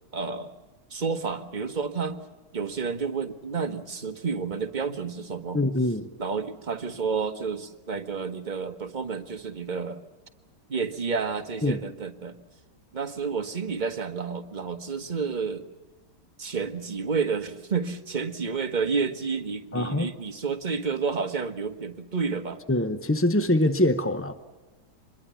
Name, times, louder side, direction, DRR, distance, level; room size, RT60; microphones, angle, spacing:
voice 1, 0.1-0.5 0.9-2.2 2.5-5.6 6.2-10.0 10.7-12.4 12.9-15.6 16.4-22.6, right 5 dB, 30° right, 1.3 m, -30 dB
voice 2, 5.5-6.1 11.6-11.8 19.7-20.1 22.7-24.3, left 1 dB, 15° left, 0.4 m, -24 dB
26.0 x 21.5 x 7.0 m
omnidirectional pair, 1.9 m